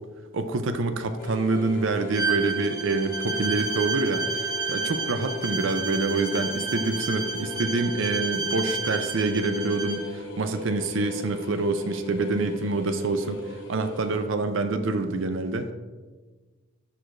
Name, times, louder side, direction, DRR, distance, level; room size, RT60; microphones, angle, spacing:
voice 1, 0.3-15.7, right 3 dB, 60° right, 8 dB, 0.5 m, -26 dB
sound 1, 1.2-14.2, left 4 dB, 80° left, 2.3 m, -39 dB
Bowed string instrument, 2.1-10.1, right 4 dB, 20° right, 0.6 m, -31 dB
12.5 x 4.9 x 2.5 m, 1.3 s
head